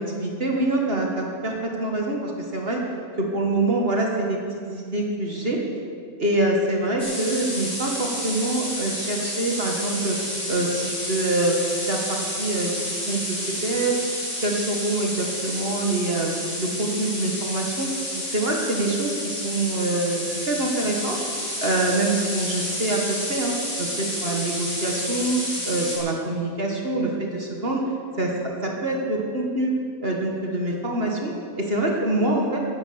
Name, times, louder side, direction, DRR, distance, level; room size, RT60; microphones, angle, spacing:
voice 1, 0.0-2.8 3.2-5.6 6.2-10.2 10.5-11.6 11.9-14.0 14.4-16.3 16.6-21.2 21.6-27.9 28.2-28.3 28.6-29.7 30.0-31.3 31.6-32.6, right 2 dB, 40° right, 0 dB, 1.8 m, -25 dB
sound 1, 7.0-26.0, left 1 dB, 50° left, 4.8 m, -30 dB
12.0 x 9.9 x 8.1 m, 2.2 s
omnidirectional pair, 1.5 m